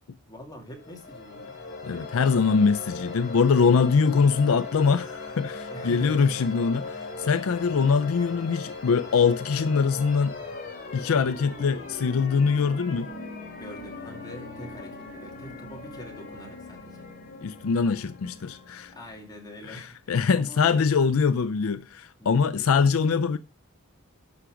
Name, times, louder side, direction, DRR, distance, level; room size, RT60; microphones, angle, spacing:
voice 1, 0.3-1.6 5.7-6.7 13.6-17.0 18.9-20.9 22.2-22.7, equal, 20° left, 2.4 m, -44 dB
sound 1, 0.7-19.3, left 3 dB, 45° left, 2.9 m, -39 dB
voice 2, 1.8-6.8 7.2-10.4 10.9-13.1 17.4-18.9 19.7-23.4, left 5 dB, 70° left, 0.4 m, -23 dB
11.5 x 5.8 x 5.1 m
head